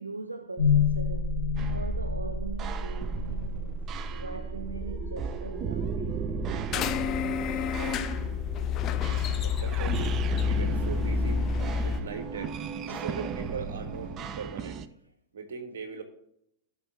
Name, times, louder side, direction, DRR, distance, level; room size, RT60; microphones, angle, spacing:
voice 1, 0.0-3.8 4.1-8.3 12.9-13.1, right 3 dB, 80° right, 0.5 m, -41 dB
sound 1, 0.6-12.6, left 3 dB, 15° left, 3.3 m, -32 dB
sound 2, 1.6-14.9, right 6 dB, 30° right, 0.6 m, -36 dB
sound 3, 6.7-12.0, left 8 dB, 35° left, 0.6 m, -29 dB
voice 2, 9.4-11.4 11.8-12.5 12.9-14.8 15.3-16.0, right 5 dB, 65° right, 1.6 m, -39 dB
17.5 x 6.0 x 3.0 m
figure-of-eight pair, 90°, 0 cm